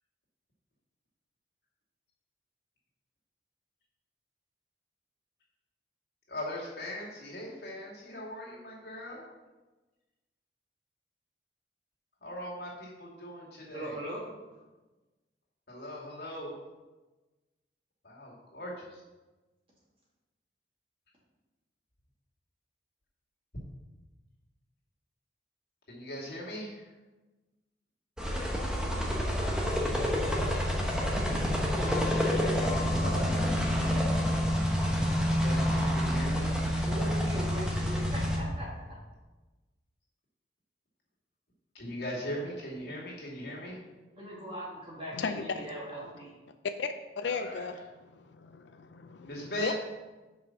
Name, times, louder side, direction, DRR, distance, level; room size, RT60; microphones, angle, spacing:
voice 1, 6.3-9.2 12.2-14.0 15.7-16.5 18.0-19.0 25.9-26.9 33.0-34.1 35.2-36.5 41.7-43.8 47.2-47.7 49.2-49.7, equal, 65° left, -5 dB, 2.4 m, -40 dB
voice 2, 13.7-14.2 14.5-14.6 28.8-30.2 36.7-39.0 43.5-43.7 44.1-46.3, equal, 30° right, -5 dB, 2.2 m, -41 dB
sound 1, 28.2-38.4, equal, 5° right, 1.0 m, -28 dB
voice 3, 45.1-45.7 46.8-47.8 48.1-49.7, left 5 dB, 85° left, 8 dB, 0.5 m, -36 dB
6.0 x 4.9 x 5.9 m, 1.2 s
head